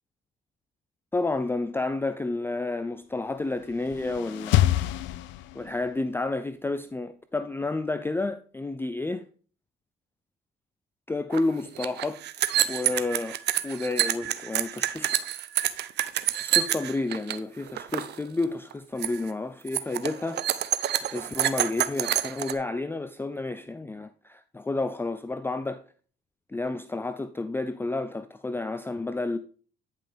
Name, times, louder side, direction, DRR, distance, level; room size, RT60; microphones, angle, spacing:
voice 1, 1.1-4.6 5.5-9.2 11.1-12.2 12.7-13.4 13.6-15.2 16.4-20.4 21.1-25.8 26.5-29.4, left 2 dB, 10° left, 0.4 m, -30 dB
sound 1, 3.5-5.9, left 13 dB, 80° left, 0.5 m, -26 dB
sound 2, 11.3-11.4 11.7-17.4 17.7-18.1 18.4-18.7 19.0-19.3 19.7-22.5, right 12 dB, 65° right, 0.6 m, -27 dB
9.8 x 5.6 x 3.4 m
supercardioid pair, 75°, 19 cm